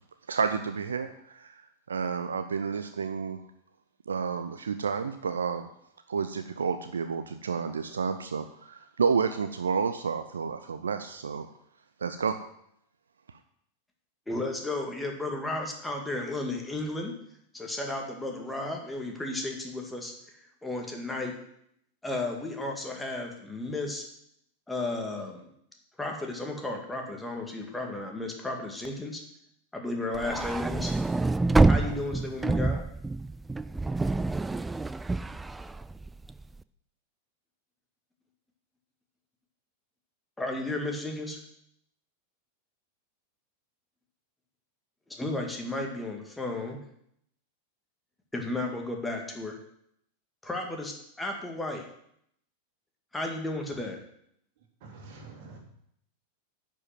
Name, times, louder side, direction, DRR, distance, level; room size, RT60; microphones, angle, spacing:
voice 1, 0.3-3.4 4.1-5.7 6.1-11.5 12.0-12.4, right 5 dB, 70° right, 9 dB, 0.5 m, -30 dB
voice 2, 14.3-17.1 17.5-21.4 22.0-24.0 24.7-25.4 26.0-29.2 29.7-30.9 31.6-32.8 40.4-41.4 45.1-46.8 48.3-49.6 50.4-51.9 53.1-54.0, left 2 dB, 5° left, 1 dB, 1.9 m, -33 dB
sound 1, 30.1-36.5, right 3 dB, 10° right, 0.4 m, -27 dB
voice 3, 54.8-55.6, right 3 dB, 50° right, 1 dB, 2.7 m, -46 dB
10.5 x 5.4 x 7.6 m, 0.72 s
figure-of-eight pair, 90°, 0 cm